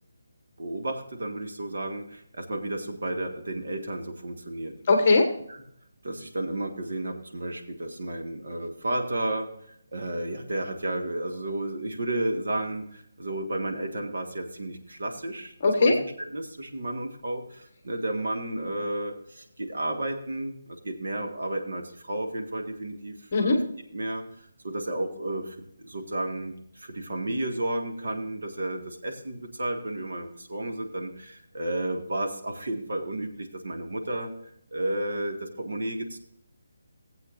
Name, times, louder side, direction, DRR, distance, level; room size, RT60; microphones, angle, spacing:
voice 1, 0.6-4.7 5.5-5.6 6.0-9.5 9.9-15.5 15.8-15.9 16.3-23.6 23.9-34.3 34.7-36.2, right 1 dB, 55° right, 3 dB, 1.5 m, -32 dB
voice 2, 4.9-5.3 15.6-15.9 23.3-23.6, left 3 dB, 25° left, 4 dB, 1.2 m, -19 dB
18.0 x 8.0 x 2.5 m, 0.69 s
hypercardioid pair, 180°, 0 cm